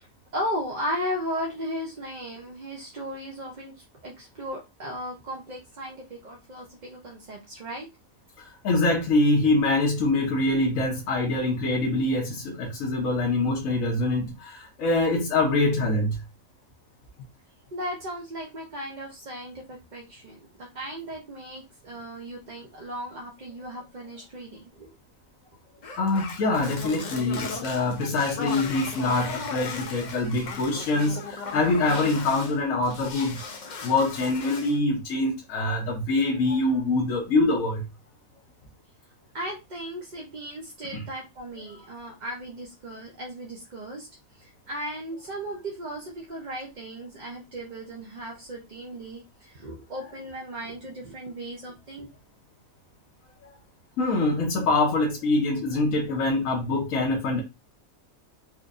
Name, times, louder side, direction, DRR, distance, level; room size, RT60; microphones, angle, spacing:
voice 1, 0.3-3.7 4.0-7.9 17.7-24.9 39.3-44.1 44.4-52.1, equal, 45° right, 0.6 m, -36 dB
voice 2, 8.4-16.2 26.0-33.4 33.8-37.8 40.9-41.0 54.0-57.4, left 2 dB, 70° left, 1.3 m, -24 dB
sound 1, 25.8-32.5 32.8-34.8, left 4 dB, 50° left, 0.5 m, -37 dB
4.2 x 2.6 x 2.5 m
omnidirectional pair, 1.5 m